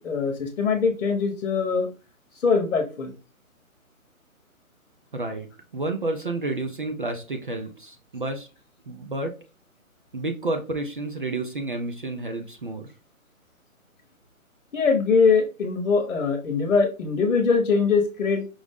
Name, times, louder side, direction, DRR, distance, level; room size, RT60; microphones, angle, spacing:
voice 1, 0.0-1.9 2.4-3.1 14.7-18.5, left 5 dB, 60° left, 5 dB, 1.0 m, -22 dB
voice 2, 5.1-5.5 5.7-8.5 8.9-9.3 10.1-12.9, right 2 dB, 40° right, 5 dB, 0.4 m, -30 dB
5.0 x 2.0 x 3.5 m, 0.34 s
figure-of-eight pair, 150°, 42 cm